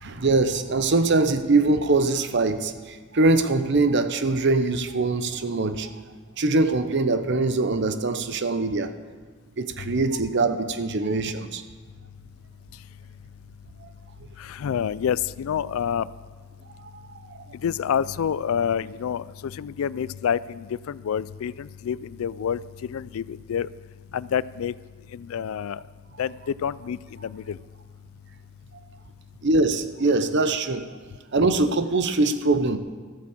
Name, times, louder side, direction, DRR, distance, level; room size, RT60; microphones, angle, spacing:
voice 1, 0.0-5.9 6.4-8.9 9.6-11.6 17.3-17.4 29.4-30.9 31.3-32.8, right 3 dB, 55° right, 10 dB, 0.8 m, -22 dB
voice 2, 14.4-16.1 17.6-22.6 22.9-23.7 24.1-24.7 25.1-25.8 26.2-27.6, left 8 dB, 75° left, 19 dB, 0.3 m, -28 dB
13.5 x 8.2 x 7.3 m, 1.5 s
head